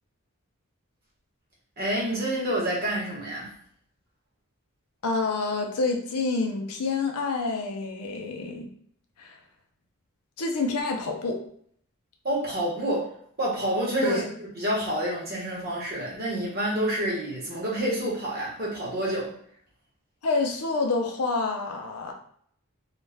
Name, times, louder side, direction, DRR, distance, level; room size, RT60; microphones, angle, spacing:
voice 1, 1.8-3.5 12.2-13.1 13.4-19.3, right 1 dB, 45° right, -5 dB, 0.9 m, -28 dB
voice 2, 5.0-8.7 9.2-9.4 10.4-11.4 14.0-14.3 20.2-22.1, left 3 dB, 85° left, 3 dB, 0.5 m, -27 dB
2.4 x 2.2 x 3.3 m, 0.64 s
head